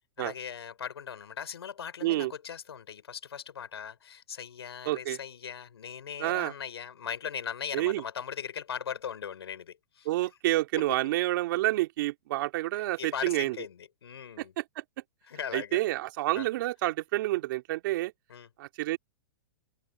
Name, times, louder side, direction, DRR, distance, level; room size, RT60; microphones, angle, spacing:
voice 1, 0.2-10.1 10.7-11.0 13.0-14.5 15.3-15.8 16.3-16.5 18.3-18.5, left 8 dB, 90° left, 6.2 m, -39 dB
voice 2, 4.8-5.2 6.2-6.5 7.7-8.0 10.0-13.6 14.4-14.8 15.5-18.1 18.6-19.0, right 17 dB, 55° right, 2.8 m, -29 dB
hypercardioid pair, 140°, 13 cm